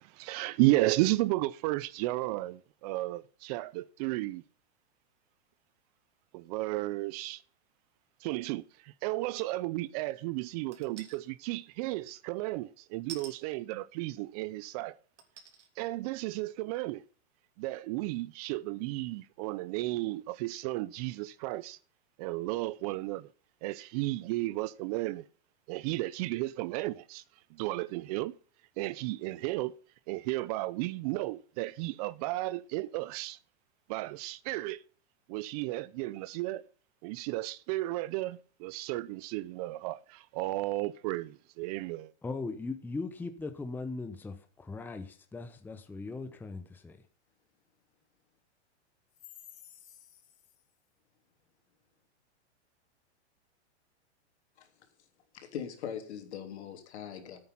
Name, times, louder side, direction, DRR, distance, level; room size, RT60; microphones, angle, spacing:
voice 1, 0.0-4.4 6.3-7.4 8.2-15.0 15.8-17.0 17.6-21.8 22.2-23.3 23.6-25.3 25.7-27.2 27.5-28.3 28.8-29.7 30.1-33.4 33.9-34.8 35.3-36.6 37.0-42.1, right 19 dB, 35° right, 0.5 m, -33 dB
sound 1, 10.7-11.2 13.1-13.3 14.3-14.4 15.2-15.7 16.2-16.3, right 7 dB, 85° right, 3.2 m, -46 dB
voice 2, 42.2-47.0, left 3 dB, 5° left, 0.8 m, -39 dB
voice 3, 55.3-57.4, left 8 dB, 70° left, 3.2 m, -41 dB
11.0 x 8.7 x 5.7 m
hypercardioid pair, 135°, 34 cm